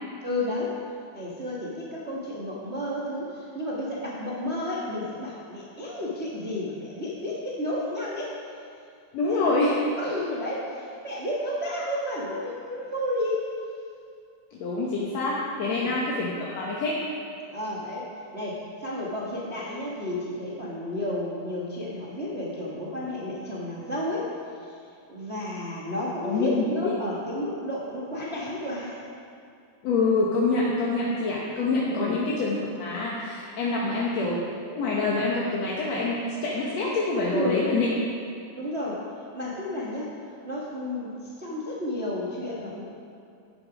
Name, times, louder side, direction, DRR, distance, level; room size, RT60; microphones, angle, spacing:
voice 1, 0.2-0.7 1.1-8.3 9.3-9.5 10.0-13.4 14.8-14.9 15.6-15.9 17.5-24.3 24.6-24.7 25.1-29.0 31.9-32.2 37.3-37.6 38.5-39.0 39.3-40.1 40.4-42.8, left 1 dB, 70° right, -5 dB, 0.6 m, -32 dB
voice 2, 9.1-9.7 14.5-17.0 26.2-26.9 29.8-34.4 34.7-37.9, left 3 dB, 60° left, -5 dB, 2.1 m, -26 dB
13.0 x 9.7 x 5.0 m, 2.5 s
omnidirectional pair, 4.0 m